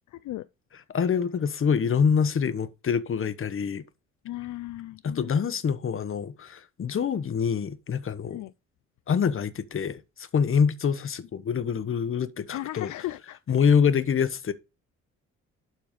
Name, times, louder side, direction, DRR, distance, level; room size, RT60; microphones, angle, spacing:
voice 1, 0.1-0.5 4.2-5.3 8.3-8.5 12.5-13.4, left 15 dB, 75° left, 0.6 m, -36 dB
voice 2, 0.9-3.8 5.0-8.4 9.1-12.9 13.5-14.5, left 6 dB, 45° left, 1.2 m, -25 dB
12.0 x 4.5 x 5.2 m
cardioid pair, 90°, 30 cm